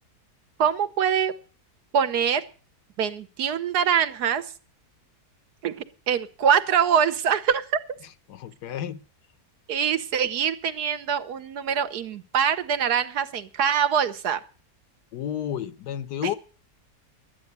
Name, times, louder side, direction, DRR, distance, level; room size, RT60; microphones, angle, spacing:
voice 1, 0.6-1.3 1.9-2.4 3.0-4.4 5.6-5.8 6.1-7.7 9.7-14.4, right 8 dB, 80° right, 10 dB, 1.5 m, -24 dB
voice 2, 8.3-9.0 15.1-16.3, left 10 dB, 90° left, 12 dB, 1.5 m, -31 dB
12.0 x 9.6 x 8.1 m, 0.39 s
omnidirectional pair, 1.7 m